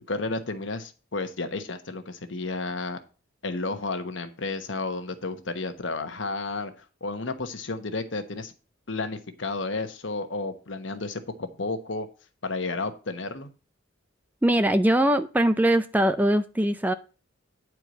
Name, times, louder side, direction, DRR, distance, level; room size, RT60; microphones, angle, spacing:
voice 1, 0.1-3.0 3.4-8.5 8.9-12.1 12.4-13.5, left 3 dB, 70° left, 8 dB, 1.2 m, -32 dB
voice 2, 14.4-16.9, right 1 dB, 10° right, 10 dB, 0.4 m, -21 dB
9.8 x 4.6 x 6.4 m, 0.34 s
head